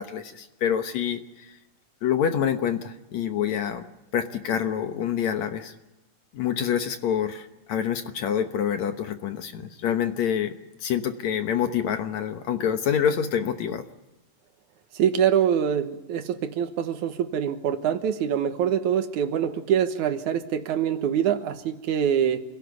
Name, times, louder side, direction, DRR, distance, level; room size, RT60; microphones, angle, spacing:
voice 1, 0.0-1.6 2.0-3.9 4.1-5.8 6.3-10.5 10.8-13.8, left 8 dB, 65° left, 7 dB, 2.1 m, -27 dB
voice 2, 14.9-22.4, right 9 dB, 65° right, 9 dB, 2.4 m, -24 dB
27.5 x 17.0 x 8.2 m, 0.97 s
omnidirectional pair, 4.0 m